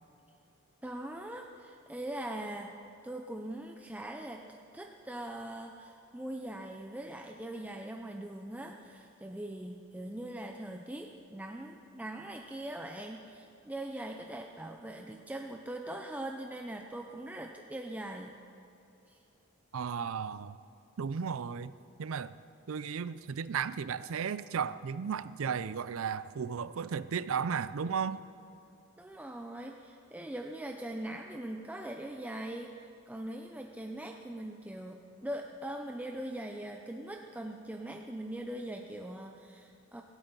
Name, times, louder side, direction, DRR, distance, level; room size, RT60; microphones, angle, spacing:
voice 1, 0.8-2.7 3.0-18.3 19.1-19.2 29.0-40.0, right 1 dB, 5° right, 3 dB, 0.5 m, -41 dB
voice 2, 19.7-20.6 21.0-21.7 22.0-22.3 22.7-28.2, right 6 dB, 70° right, 16 dB, 0.4 m, -34 dB
17.0 x 13.0 x 3.9 m, 2.8 s
head